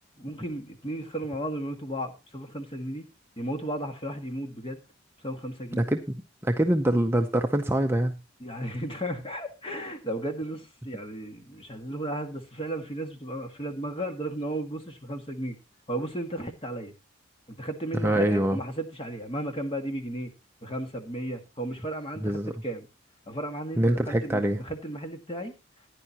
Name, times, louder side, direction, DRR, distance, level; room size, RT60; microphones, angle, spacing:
voice 1, 0.2-3.1 3.4-4.8 5.2-5.8 8.4-15.6 15.9-16.9 17.5-20.3 20.6-22.9 23.3-25.5, right 1 dB, 25° left, 5 dB, 1.7 m, -34 dB
voice 2, 6.4-8.2 18.0-18.6 22.2-22.5 23.8-24.6, right 1 dB, 10° right, 5 dB, 0.6 m, -24 dB
15.5 x 10.0 x 2.9 m, 0.28 s
head